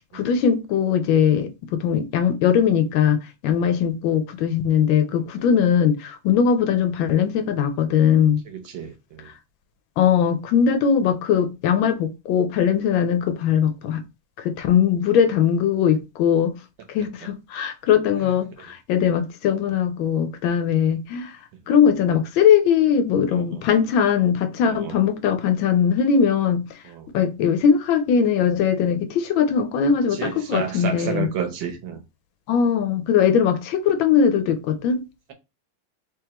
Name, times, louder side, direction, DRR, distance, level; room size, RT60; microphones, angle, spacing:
voice 1, 0.1-3.2 3.4-8.4 10.0-14.0 14.4-16.6 16.9-21.4 21.7-26.6 27.1-31.3 32.5-35.0, left 7 dB, 75° left, 1.3 m, -20 dB
voice 2, 5.1-5.5 8.5-9.3 17.2-17.3 18.2-18.3 18.6-18.7 23.3-23.6 24.6-25.0 26.8-27.1 30.1-32.0, right 8 dB, 70° right, 1.4 m, -32 dB
3.5 x 3.3 x 2.9 m
omnidirectional pair, 2.3 m